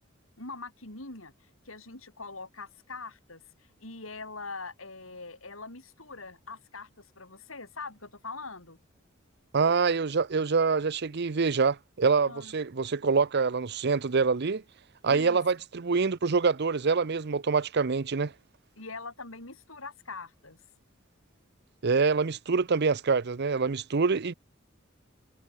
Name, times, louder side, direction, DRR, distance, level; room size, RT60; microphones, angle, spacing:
voice 1, 0.4-1.3 1.7-8.8 12.3-12.6 15.0-15.4 18.8-20.6, left 3 dB, 75° left, 7.0 m, -43 dB
voice 2, 9.5-14.6 15.0-18.3 21.8-24.3, right 4 dB, 55° right, 0.7 m, -25 dB
head